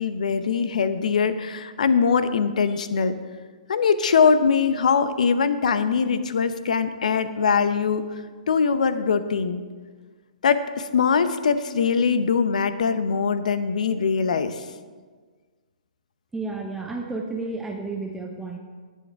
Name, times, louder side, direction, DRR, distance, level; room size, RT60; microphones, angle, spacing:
voice 1, 0.0-3.1 3.7-8.1 8.5-9.6 10.4-14.6, left 6 dB, 65° left, 12 dB, 0.7 m, -22 dB
voice 2, 16.3-18.6, right 3 dB, 5° right, 1 dB, 0.8 m, -31 dB
18.0 x 7.3 x 3.5 m, 1.5 s
figure-of-eight pair, 125°, 4 cm